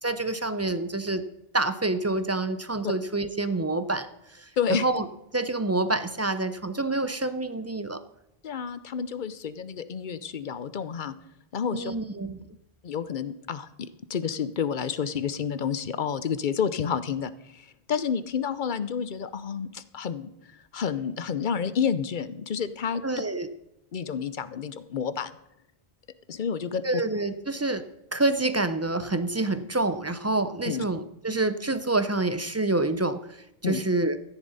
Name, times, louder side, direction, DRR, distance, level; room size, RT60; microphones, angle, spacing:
voice 1, 0.0-1.2 1.5-4.1 4.3-5.1 5.3-8.0 11.7-12.4 23.0-23.5 26.8-27.8 28.1-33.2 33.6-34.2, right 2 dB, 20° right, 11 dB, 0.4 m, -27 dB
voice 2, 8.4-11.1 11.5-11.9 12.8-20.3 20.7-23.0 23.9-25.3 26.3-26.8 30.7-30.8 33.6-33.8, left 7 dB, 55° left, 14 dB, 0.8 m, -30 dB
14.0 x 9.9 x 4.0 m, 0.87 s
omnidirectional pair, 1.1 m